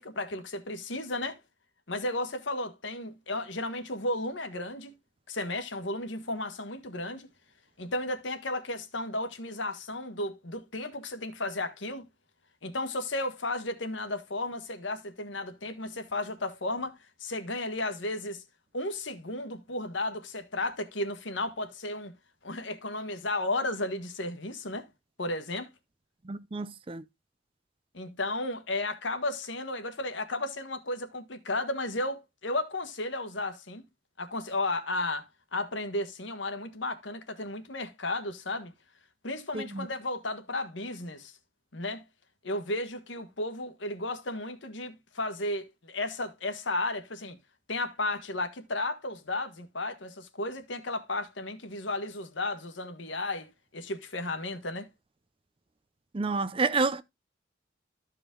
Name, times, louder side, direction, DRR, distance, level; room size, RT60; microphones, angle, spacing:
voice 1, 0.0-1.4 1.9-4.9 5.3-7.3 7.8-12.0 12.6-18.4 18.7-22.1 22.4-24.9 25.2-25.7 27.9-33.8 34.2-38.7 39.2-41.3 41.7-42.0 42.4-47.4 47.7-54.9, left 2 dB, 75° left, 1.5 m, -34 dB
voice 2, 26.2-27.0 39.5-39.9 56.1-57.0, right 4 dB, 30° right, 0.5 m, -29 dB
13.5 x 5.0 x 3.8 m
head